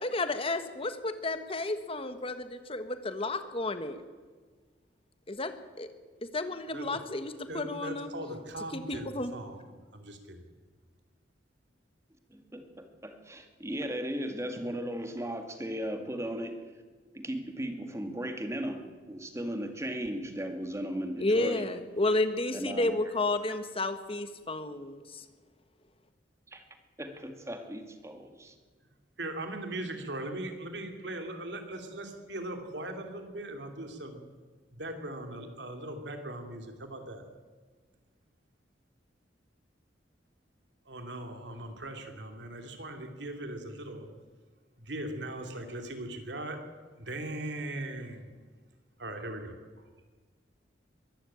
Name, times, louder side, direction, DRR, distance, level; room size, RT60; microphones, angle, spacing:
voice 1, 0.0-4.0 5.3-5.9 6.2-8.1 8.7-9.3 21.2-25.2, left 2 dB, 30° left, 10 dB, 1.4 m, -32 dB
voice 2, 7.5-10.4 29.2-34.2 34.7-37.2 40.8-44.1 44.8-46.6 47.0-48.3 49.0-49.8, right 1 dB, 75° right, 5 dB, 3.0 m, -39 dB
voice 3, 12.3-16.6 17.1-21.7 22.5-22.9 26.5-26.6 27.0-28.5, equal, 15° right, 6 dB, 2.0 m, -36 dB
22.5 x 13.5 x 8.8 m, 1.4 s
head